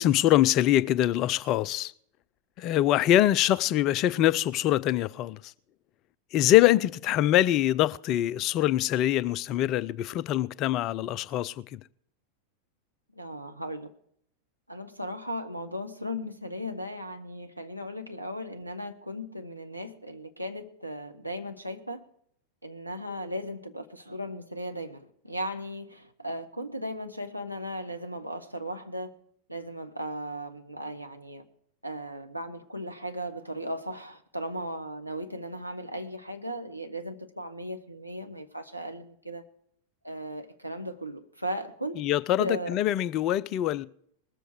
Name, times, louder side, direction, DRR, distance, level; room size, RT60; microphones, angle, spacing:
voice 1, 0.0-1.9 2.6-5.5 6.3-11.8 42.0-43.9, left 13 dB, 35° left, 0.5 m, -24 dB
voice 2, 13.2-13.9 14.7-22.0 22.6-29.1 29.5-31.4 31.8-39.4 40.0-42.0 42.4-42.7, equal, 90° right, 1.0 m, -36 dB
20.5 x 7.8 x 4.7 m
figure-of-eight pair, 90°, 0 cm